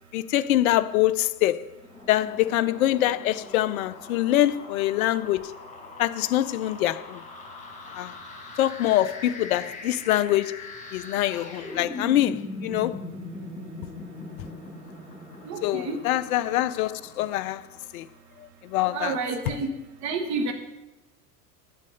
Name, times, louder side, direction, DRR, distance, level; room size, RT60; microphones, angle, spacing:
voice 1, 0.1-1.7 2.1-5.5 6.0-7.2 7.9-8.1 8.6-10.7 10.9-13.0 15.6-17.6 17.9-18.1 18.6-19.2, left 14 dB, 60° left, 0.5 m, -24 dB
sound 1, 1.7-18.1, left 3 dB, 15° left, 4.3 m, -41 dB
voice 2, 15.4-16.0 18.9-19.7 20.0-20.5, right 4 dB, 35° right, 1.3 m, -29 dB
8.2 x 7.4 x 6.6 m
figure-of-eight pair, 80°, 48 cm